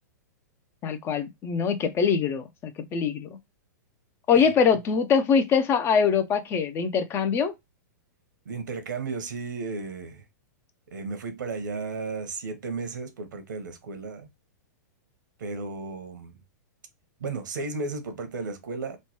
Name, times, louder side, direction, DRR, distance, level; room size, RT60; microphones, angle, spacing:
voice 1, 0.8-3.3 4.3-7.5, left 6 dB, 25° left, 0.4 m, -23 dB
voice 2, 8.5-10.2 10.9-14.3 15.4-16.4 17.2-19.0, right 4 dB, 80° right, 0.8 m, -34 dB
3.1 x 2.1 x 2.9 m
hypercardioid pair, 130°, 10 cm